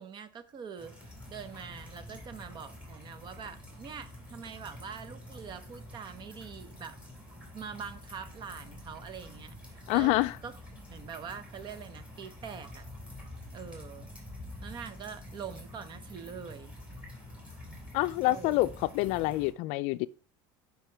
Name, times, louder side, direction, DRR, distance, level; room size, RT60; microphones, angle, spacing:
voice 1, 0.0-7.0 7.5-10.1 10.4-12.8 13.5-14.1 14.6-16.7 18.2-18.7, right 7 dB, 40° right, 0.8 m, -44 dB
sound 1, 0.8-19.5, left 1 dB, 10° right, 2.9 m, -47 dB
voice 2, 9.9-10.3 17.9-20.1, left 19 dB, 70° left, 0.4 m, -27 dB
7.3 x 5.6 x 3.4 m
cardioid pair, 130°, 12 cm